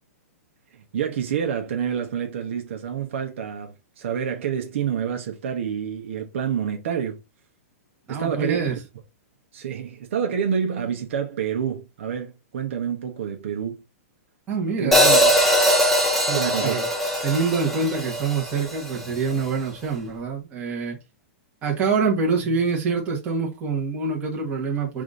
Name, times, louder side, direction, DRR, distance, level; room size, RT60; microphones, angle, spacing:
voice 1, 0.9-7.2 8.1-8.6 9.5-13.8 14.8-15.0 16.3-16.7, right 8 dB, 55° right, 0.9 m, -28 dB
voice 2, 8.1-8.8 14.5-15.4 16.2-16.9 17.2-21.0 21.6-25.0, right 5 dB, 15° right, 1.3 m, -25 dB
Hi-hat, 14.9-19.1, equal, 5° left, 0.7 m, -21 dB
4.9 x 2.6 x 3.6 m
hypercardioid pair, 170°, 8 cm